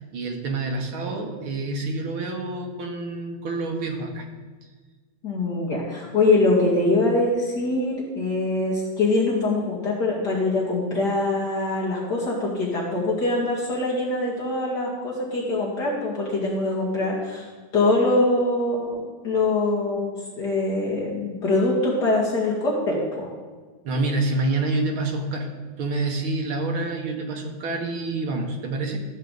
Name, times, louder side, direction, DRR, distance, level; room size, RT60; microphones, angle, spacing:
voice 1, 0.0-4.3 23.8-29.0, right 2 dB, 70° right, 2 dB, 2.2 m, -27 dB
voice 2, 5.2-17.4 17.7-23.3, left 2 dB, 50° left, -5 dB, 2.5 m, -23 dB
14.0 x 8.3 x 4.0 m, 1.4 s
omnidirectional pair, 2.4 m